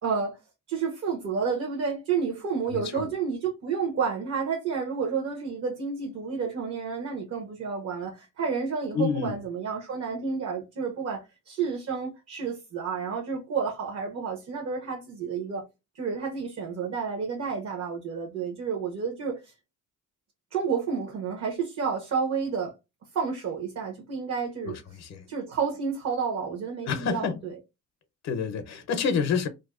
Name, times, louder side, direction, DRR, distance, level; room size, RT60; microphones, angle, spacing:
voice 1, 0.0-0.4 0.7-15.6 15.9-19.5 20.5-22.7 23.1-25.0 25.3-27.5, right 6 dB, 60° right, 0.9 m, -30 dB
voice 2, 2.7-3.1 8.9-9.4 24.6-25.3 26.9-27.4 28.2-29.5, left 6 dB, 60° left, 0.6 m, -28 dB
2.6 x 2.1 x 2.4 m
cardioid pair, 90°, 30 cm